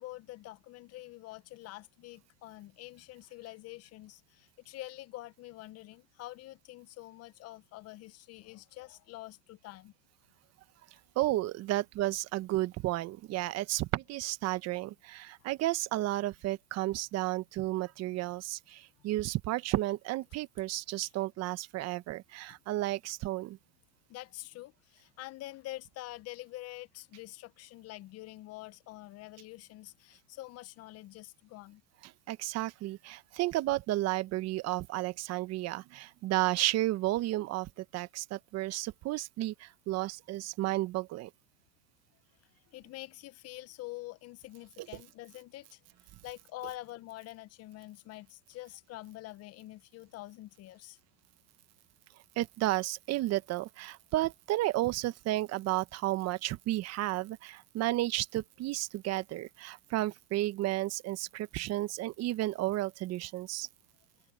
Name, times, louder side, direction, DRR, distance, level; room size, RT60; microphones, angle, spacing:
voice 1, 0.0-9.9 21.0-21.1 24.1-31.8 42.7-45.8 46.2-51.0, left 17 dB, 45° left, 1.1 m, -46 dB
voice 2, 11.2-23.6 32.3-41.3 52.4-63.7, right 16 dB, 45° right, 1.2 m, -32 dB
hypercardioid pair, 110°, 36 cm